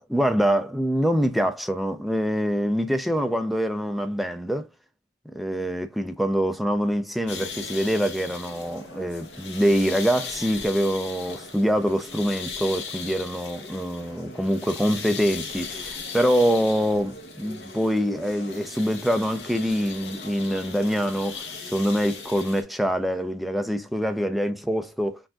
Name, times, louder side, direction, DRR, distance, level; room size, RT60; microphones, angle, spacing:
voice 1, 0.0-4.7 5.3-25.2, equal, ahead, 0.3 m, -25 dB
sound 1, 7.3-22.6, left 4 dB, 70° left, 1.0 m, -38 dB
5.9 x 2.6 x 2.2 m
head